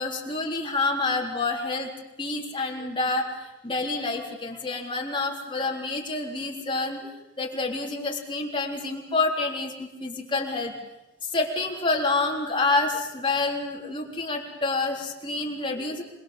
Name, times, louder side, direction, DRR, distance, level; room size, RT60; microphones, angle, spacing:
voice 1, 0.0-1.9 2.2-7.1 7.4-10.7 11.2-16.0, left 3 dB, 25° left, -1 dB, 3.7 m, -28 dB
26.5 x 21.0 x 7.2 m, 0.98 s
head